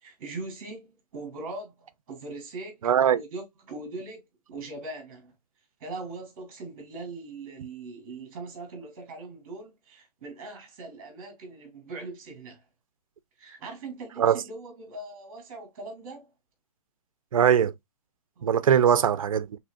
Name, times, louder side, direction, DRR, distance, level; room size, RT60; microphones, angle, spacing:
voice 1, 0.0-2.8 3.1-4.2 4.5-5.3 5.8-12.6 13.4-16.3 18.4-19.0, right 3 dB, 30° right, 3.0 m, -40 dB
voice 2, 2.8-3.2 14.2-14.4 17.3-17.7 18.4-19.6, right 8 dB, 55° right, 0.6 m, -21 dB
6.3 x 3.2 x 2.4 m
hypercardioid pair, 170°, 21 cm